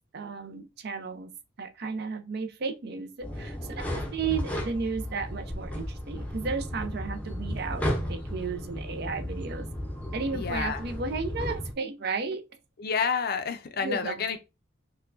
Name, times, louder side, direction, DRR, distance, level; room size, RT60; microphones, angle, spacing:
voice 1, 0.1-1.3 1.6-7.8 8.1-9.7 10.1-12.4 13.8-14.4, right 4 dB, 55° right, 0.5 m, -34 dB
sound 1, 3.2-11.7, equal, 10° left, 0.6 m, -34 dB
voice 2, 10.3-10.8 12.8-14.4, left 6 dB, 50° left, 0.5 m, -29 dB
4.3 x 2.2 x 2.5 m
head